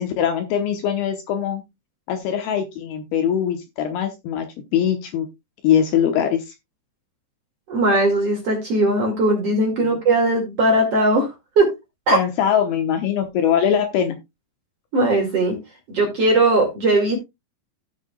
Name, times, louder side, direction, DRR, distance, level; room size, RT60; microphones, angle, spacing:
voice 1, 0.0-1.6 2.1-4.5 4.7-5.3 5.6-6.5 9.8-10.0 12.1-14.2, left 9 dB, 75° left, 6 dB, 2.5 m, -22 dB
voice 2, 7.7-11.3 11.6-11.7 12.1-12.2 14.9-15.6 15.9-17.2, right 2 dB, 45° right, 0 dB, 2.3 m, -19 dB
15.5 x 6.5 x 2.3 m, 0.21 s
omnidirectional pair, 5.3 m